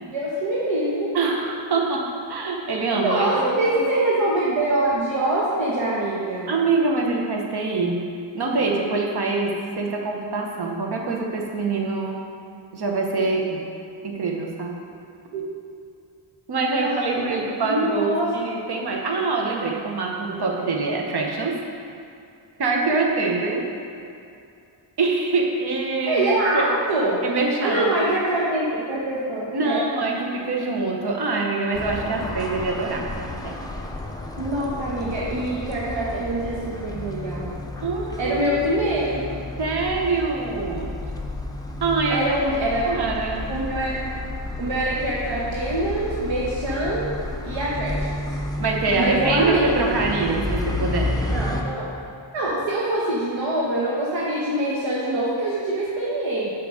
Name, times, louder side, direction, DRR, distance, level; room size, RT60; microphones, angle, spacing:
voice 1, 0.1-1.2 3.0-6.5 15.3-15.4 16.8-18.3 26.1-27.2 27.6-29.8 34.4-37.6 38.2-39.3 42.1-42.9 43.5-44.1 44.6-47.1 47.4-48.2 49.0-49.6 51.3-51.9 52.3-56.5, right 1 dB, 80° right, -6 dB, 1.2 m, -24 dB
voice 2, 1.1-3.8 6.5-8.1 8.3-12.2 12.7-13.6 14.0-14.8 16.5-21.6 22.6-23.7 25.0-26.7 27.2-27.9 29.5-33.1 33.4-33.5 37.8-38.5 39.6-41.0 41.8-42.3 42.9-43.4 48.6-51.4, right 3 dB, 55° right, 0 dB, 1.1 m, -24 dB
sound 1, 31.7-51.6, left 2 dB, 10° left, 0.5 m, -31 dB
7.0 x 4.8 x 6.3 m, 2.6 s
wide cardioid pair, 120°, 46 cm